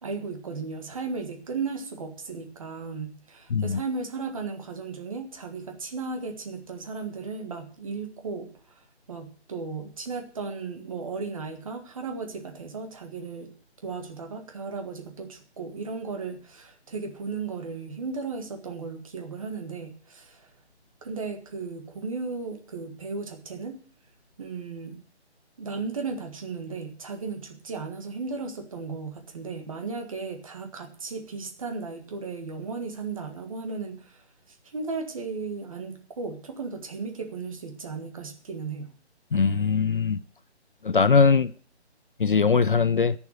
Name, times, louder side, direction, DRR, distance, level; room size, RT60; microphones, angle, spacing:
voice 1, 0.0-8.5 8.8-13.5 13.8-20.5 21.0-23.8 24.4-25.0 25.6-38.9, right 4 dB, 30° right, 1.7 m, -35 dB
voice 2, 39.3-40.2 40.8-41.5 42.2-43.1, left 5 dB, 50° left, 0.5 m, -21 dB
15.0 x 7.2 x 6.5 m
hypercardioid pair, 170°, 34 cm